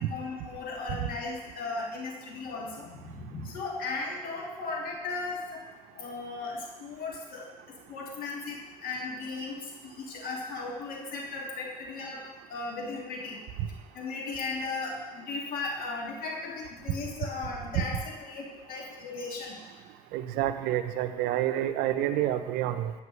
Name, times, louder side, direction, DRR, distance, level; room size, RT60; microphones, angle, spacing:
voice 1, 0.0-2.9 3.4-5.6 5.9-7.5 7.9-13.4 13.9-19.6, left 3 dB, 65° left, -1 dB, 1.7 m, -36 dB
sound 1, 2.2-8.3, equal, 45° left, 2.7 m, -50 dB
voice 2, 20.1-22.9, right 12 dB, 80° right, 10 dB, 0.5 m, -28 dB
9.2 x 5.8 x 3.1 m, 1.2 s
supercardioid pair, 75°, 16 cm